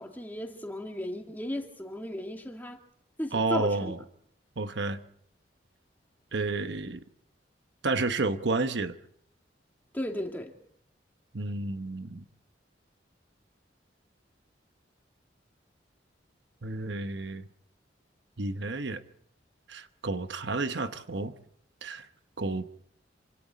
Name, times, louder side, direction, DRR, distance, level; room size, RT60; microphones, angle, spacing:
voice 1, 0.0-2.8 3.2-3.9 9.9-10.5, left 1 dB, 10° left, 2 dB, 2.2 m, -35 dB
voice 2, 3.3-4.0 4.6-5.0 6.3-7.0 7.8-8.9 11.3-12.2 16.6-17.5 18.4-19.0 19.7-21.3 21.8-22.1 22.4-22.7, right 3 dB, 75° right, 10 dB, 1.0 m, -31 dB
27.0 x 25.5 x 4.2 m, 0.66 s
head